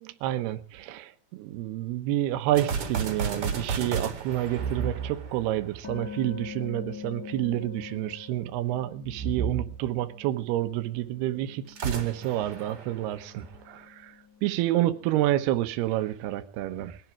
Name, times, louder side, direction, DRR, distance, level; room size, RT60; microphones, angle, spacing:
voice 1, 0.0-14.1 14.4-17.0, right 13 dB, 75° right, 3.0 m, -29 dB
sound 1, 2.5-6.0 11.7-13.8, right 5 dB, 40° right, 2.5 m, -33 dB
sound 2, 5.8-10.5 10.8-15.7, left 7 dB, 35° left, 1.6 m, -45 dB
20.5 x 12.5 x 4.8 m
omnidirectional pair, 4.7 m